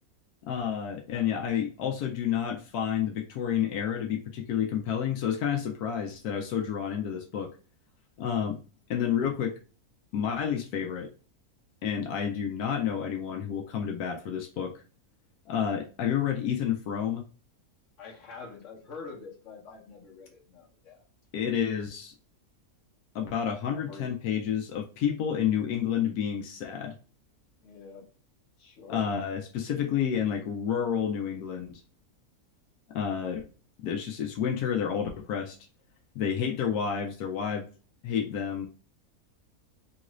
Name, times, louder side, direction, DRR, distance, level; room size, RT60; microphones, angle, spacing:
voice 1, 0.5-7.5 8.2-8.6 8.9-9.6 10.1-11.1 11.8-14.7 15.5-17.2 21.3-22.1 23.1-26.9 28.9-31.8 32.9-33.5 33.8-35.6 36.2-37.7 38.0-38.7, left 8 dB, 85° left, 2 dB, 1.1 m, -30 dB
voice 2, 18.0-21.0 23.7-24.2 27.6-28.1 28.6-29.0, left 4 dB, 55° left, -1 dB, 1.2 m, -45 dB
3.1 x 2.5 x 2.9 m, 0.38 s
omnidirectional pair, 1.6 m